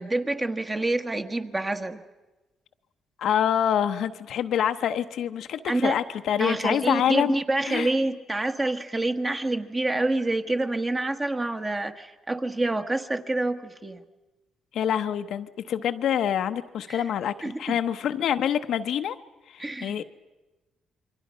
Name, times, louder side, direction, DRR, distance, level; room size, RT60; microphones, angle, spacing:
voice 1, 0.0-2.0 5.7-6.0 6.4-14.0 16.9-17.0 17.4-17.8 19.6-19.9, right 2 dB, 20° right, 7 dB, 1.4 m, -27 dB
voice 2, 3.2-7.3 7.7-7.9 14.7-19.2 19.5-20.0, left 9 dB, 75° left, 8 dB, 0.9 m, -26 dB
28.0 x 23.5 x 5.6 m, 1.1 s
cardioid pair, 90°, 0 cm